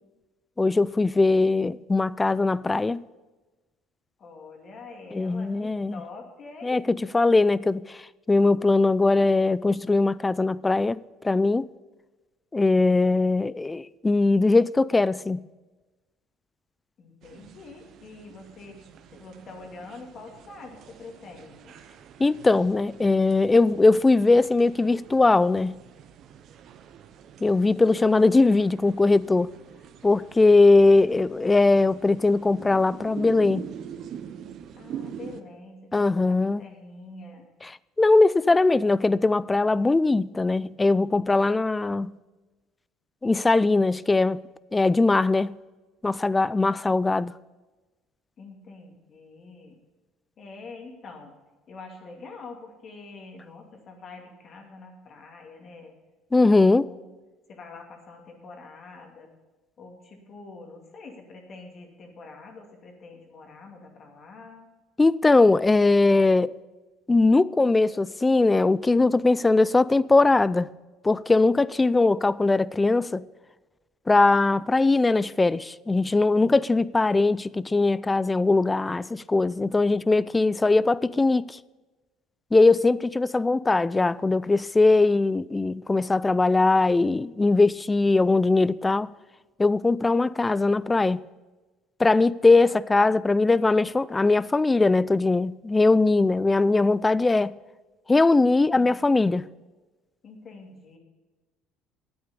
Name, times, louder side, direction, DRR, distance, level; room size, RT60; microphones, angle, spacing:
voice 1, 0.6-3.0 5.1-5.9 6.6-6.8 7.1-8.0 8.3-11.0 11.2-11.6 12.5-15.5 22.2-25.8 27.4-29.5 30.0-33.7 35.9-36.6 38.0-42.1 43.2-44.4 44.7-45.5 46.0-47.3 56.3-56.9 65.0-66.5 67.1-70.7 71.0-73.3 74.1-81.6 82.5-89.1 89.6-91.2 92.0-97.5 98.1-99.5, left 3 dB, 20° left, 0.3 m, -20 dB
voice 2, 4.2-6.8 17.0-21.8 30.9-31.9 34.7-37.5 48.4-49.8 50.4-51.3 51.7-55.9 56.3-57.0 57.5-59.3 59.8-64.7 98.7-99.0 100.2-101.0, left 3 dB, 45° left, 2.3 m, -45 dB
sound 1, 17.2-35.4, right 8 dB, 60° right, 0.8 m, -44 dB
9.7 x 8.6 x 6.8 m
supercardioid pair, 80°, 0 cm